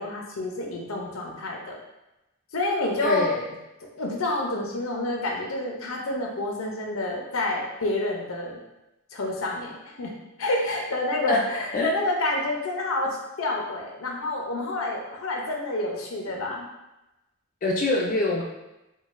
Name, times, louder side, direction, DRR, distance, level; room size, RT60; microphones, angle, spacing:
voice 1, 0.0-1.8 2.5-3.3 4.0-8.6 9.1-10.1 10.4-16.7, left 2 dB, 85° left, 0 dB, 0.6 m, -28 dB
voice 2, 3.0-3.5 11.3-11.4 11.7-11.9 17.6-18.4, left 2 dB, 40° left, -3 dB, 0.4 m, -24 dB
3.8 x 2.2 x 2.5 m, 0.97 s
head